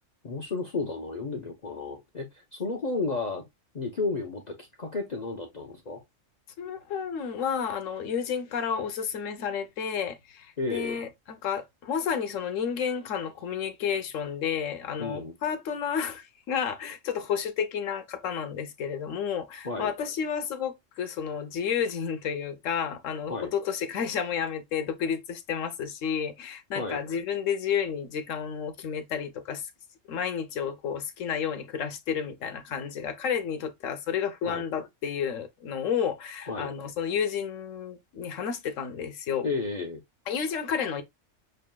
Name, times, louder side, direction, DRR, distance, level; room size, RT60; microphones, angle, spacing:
voice 1, 0.2-3.5 3.7-6.0 10.6-11.0 15.0-15.3 19.6-19.9 23.3-23.5 26.7-27.0 34.4-34.6 36.5-36.7 39.4-40.0, left 3 dB, 40° left, 0.7 m, -32 dB
voice 2, 6.6-29.6 30.1-39.4 40.3-41.0, left 7 dB, 85° left, 1.1 m, -31 dB
6.5 x 2.7 x 2.2 m
omnidirectional pair, 1.3 m